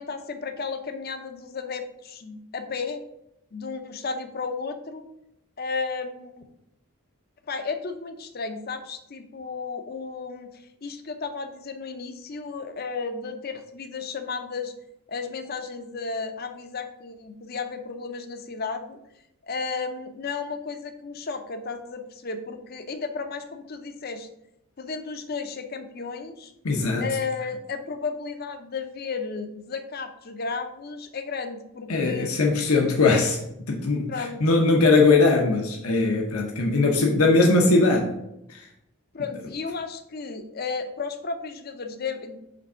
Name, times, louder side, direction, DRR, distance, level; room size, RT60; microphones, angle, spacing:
voice 1, 0.0-3.0 3.5-5.1 5.6-6.4 7.5-10.5 10.8-14.7 15.1-19.0 19.5-24.3 24.8-26.5 27.0-32.3 34.1-34.4 39.1-42.4, left 4 dB, 45° left, 8 dB, 0.6 m, -33 dB
voice 2, 26.6-27.0 31.9-33.4 33.7-38.1 38.5-38.6, left 3 dB, 75° left, 1 dB, 0.8 m, -20 dB
5.2 x 3.4 x 5.5 m, 0.82 s
head